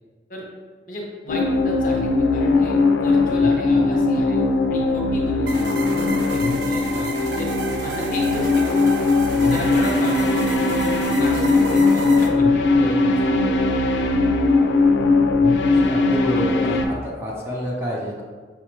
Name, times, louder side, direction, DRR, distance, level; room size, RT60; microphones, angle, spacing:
voice 1, 0.9-4.4 4.7-7.5 7.8-9.0 9.4-10.3 10.7-13.5, left 1 dB, 50° left, -1 dB, 0.7 m, -33 dB
sound 1, 1.3-16.9, left 3 dB, 90° left, 0.4 m, -19 dB
sound 2, 5.5-12.3, right 3 dB, 90° right, 0.5 m, -31 dB
voice 2, 15.7-18.2, equal, 15° right, -4 dB, 0.5 m, -28 dB
5.6 x 2.0 x 3.0 m, 1.5 s
head